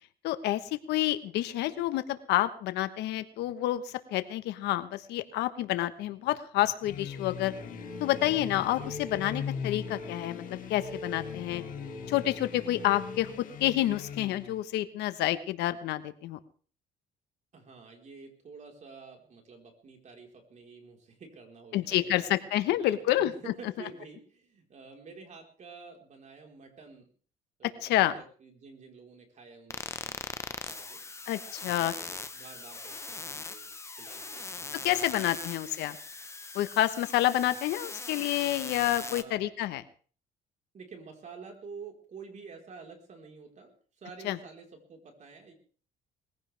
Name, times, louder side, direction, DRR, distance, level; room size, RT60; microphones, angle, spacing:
voice 1, 0.2-7.5 8.0-11.6 12.1-13.3 13.6-16.4 21.7-23.3 27.8-28.1 31.3-31.9 34.8-36.0 36.5-39.8 44.2-44.4, left 14 dB, 85° left, 11 dB, 1.3 m, -29 dB
sound 1, 6.8-14.6, left 7 dB, 55° left, 2.2 m, -41 dB
sound 2, 7.6-13.7, left 1 dB, 20° right, 7.6 m, -44 dB
voice 2, 17.5-27.1 27.6-31.0 31.7-35.6 37.4-37.5 39.0-39.5 40.7-45.5, right 4 dB, 45° right, 2 dB, 4.4 m, -49 dB
sound 3, 29.7-39.2, left 3 dB, 15° left, 1.0 m, -40 dB
21.0 x 15.5 x 3.5 m, 0.42 s
cardioid pair, 110°, 17 cm